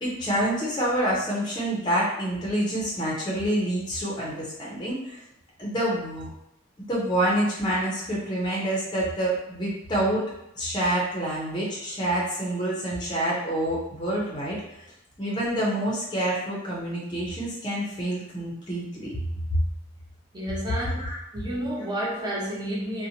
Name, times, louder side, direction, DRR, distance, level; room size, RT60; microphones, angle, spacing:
voice 1, 0.0-5.2 5.6-6.3 6.8-10.3 10.6-14.6 15.2-19.2 19.5-19.6 20.7-21.2, right 1 dB, 20° left, -5 dB, 0.6 m, -27 dB
voice 2, 20.3-20.9 21.3-23.1, equal, 20° right, -4 dB, 0.6 m, -30 dB
2.7 x 2.1 x 2.7 m, 0.83 s
head